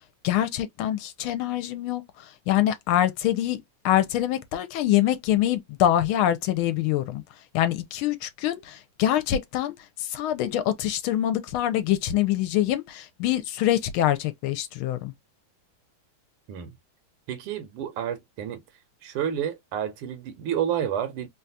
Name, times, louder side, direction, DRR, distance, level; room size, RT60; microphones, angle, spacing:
voice 1, 0.2-3.6 3.8-7.2 7.5-15.1, left 12 dB, 80° left, 1.4 m, -25 dB
voice 2, 17.3-18.6 19.0-21.3, right 9 dB, 85° right, 1.7 m, -30 dB
3.8 x 2.3 x 2.7 m
omnidirectional pair, 2.4 m